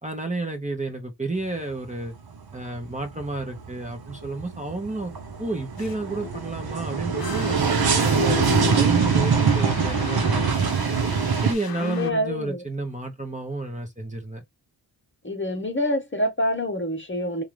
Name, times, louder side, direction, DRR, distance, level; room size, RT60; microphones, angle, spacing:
voice 1, 0.0-2.1 2.5-5.1 5.4-8.4 8.7-11.1 11.4-14.4, right 2 dB, 15° right, 1.0 m, -31 dB
sound 1, 1.4-2.0 2.3-11.5, right 6 dB, 60° right, 1.0 m, -23 dB
sound 2, 5.8-6.0 6.2-6.5 7.2-12.1, left 8 dB, 55° left, 0.8 m, -34 dB
voice 2, 11.8-12.6 15.2-17.4, left 1 dB, 25° left, 1.0 m, -26 dB
4.6 x 2.5 x 3.3 m
wide cardioid pair, 120°, 42 cm